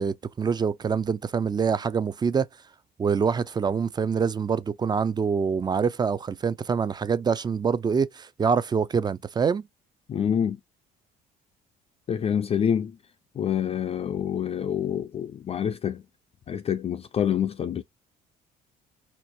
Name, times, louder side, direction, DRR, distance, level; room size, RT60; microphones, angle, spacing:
voice 1, 0.0-2.5 3.0-9.7, right 6 dB, 25° right, 0.5 m, -25 dB
voice 2, 10.1-10.6 12.1-13.0 13.4-16.0 16.5-17.8, left 8 dB, 35° left, 0.4 m, -27 dB
4.5 x 2.6 x 2.6 m
cardioid pair, 110°, 17 cm